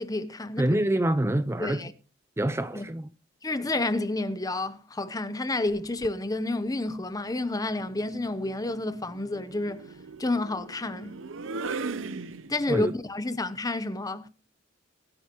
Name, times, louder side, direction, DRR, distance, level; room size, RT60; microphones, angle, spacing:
voice 1, 0.0-0.8 1.6-1.9 2.7-2.9 3.4-9.8 10.2-11.2 12.5-14.3, left 2 dB, 20° left, 0.8 m, -30 dB
voice 2, 0.6-1.8 2.4-3.1 12.7-12.9, right 1 dB, 15° right, 0.5 m, -26 dB
sound 1, 5.7-6.2 7.6-12.9, right 4 dB, 80° right, 0.8 m, -39 dB
23.0 x 8.7 x 3.1 m
head